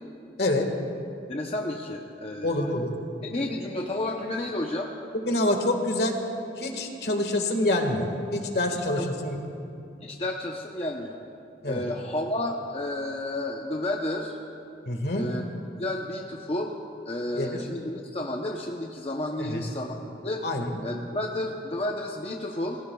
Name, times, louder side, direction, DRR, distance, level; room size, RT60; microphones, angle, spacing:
voice 1, 1.3-2.7 3.2-4.9 9.0-9.1 10.0-11.2 11.6-14.4 15.1-15.4 15.8-16.7 17.1-20.4 20.8-22.8, left 1 dB, 35° left, 0 dB, 0.8 m, -31 dB
voice 2, 2.4-3.0 5.2-6.2 6.6-9.4 11.6-11.9 14.8-15.3 17.3-17.6 19.4-19.6 20.4-20.7, left 1 dB, 65° left, 4 dB, 1.7 m, -26 dB
27.0 x 20.0 x 2.3 m, 2.7 s
head